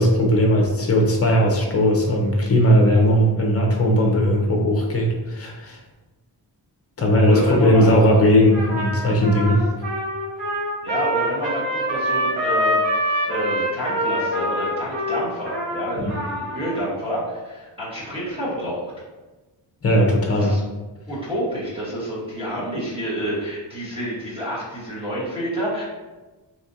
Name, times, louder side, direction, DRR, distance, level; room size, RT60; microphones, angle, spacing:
voice 1, 0.0-5.8 7.0-9.7 16.0-16.1 19.8-20.5, equal, 35° left, 1 dB, 0.6 m, -18 dB
voice 2, 7.2-7.9 10.8-18.9 20.4-20.6 21.1-25.8, equal, 10° right, -9 dB, 1.1 m, -28 dB
Trumpet, 8.5-16.8, equal, 75° right, 1.2 m, -25 dB
4.1 x 2.9 x 2.6 m, 1.2 s
wide cardioid pair, 175°, 44 cm